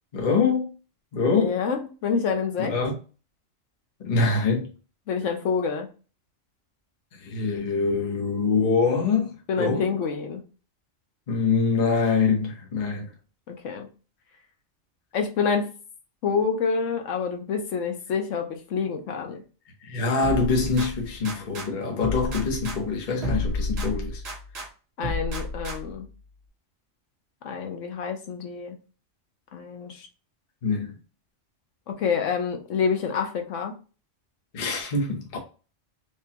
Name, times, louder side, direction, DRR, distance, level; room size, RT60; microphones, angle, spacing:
voice 1, 0.1-0.7 1.1-1.6 2.6-2.9 4.0-4.7 7.2-9.8 11.3-13.1 19.8-24.2 30.6-31.0 34.5-35.4, left 4 dB, 40° left, 1.0 m, -24 dB
voice 2, 1.3-2.7 5.1-5.9 9.5-10.4 13.5-13.9 15.1-15.7 16.2-19.4 25.0-26.1 27.4-28.8 29.5-30.1 31.9-33.7, left 5 dB, 80° left, 1.1 m, -27 dB
sound 1, 20.2-21.7 22.0-24.7 25.0-26.1, left 2 dB, 55° right, 1.4 m, -31 dB
4.9 x 2.2 x 2.8 m
omnidirectional pair, 1.3 m